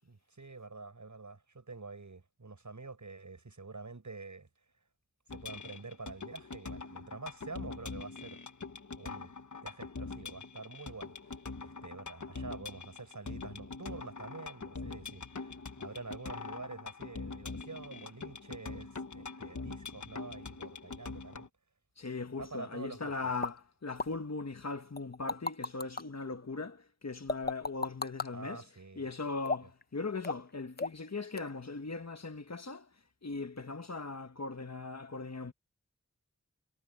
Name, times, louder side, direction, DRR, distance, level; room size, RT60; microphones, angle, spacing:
voice 1, 0.0-4.5 5.3-8.4 9.0-9.3 9.6-21.5 22.4-23.3 28.3-29.1 29.6-29.7, right 3 dB, 80° right, 5.9 m, -47 dB
sound 1, 5.3-21.5, left 4 dB, 80° left, 1.4 m, -44 dB
voice 2, 22.0-28.6 29.0-32.9 33.2-35.5, left 3 dB, 60° left, 1.4 m, -39 dB
sound 2, 23.4-23.5 24.0-24.1 25.0-26.0 27.3-28.3 29.5-29.8 30.2-30.5 30.8-31.1 31.4-31.5, left 3 dB, 35° left, 0.7 m, -34 dB
wide cardioid pair, 60°, 29 cm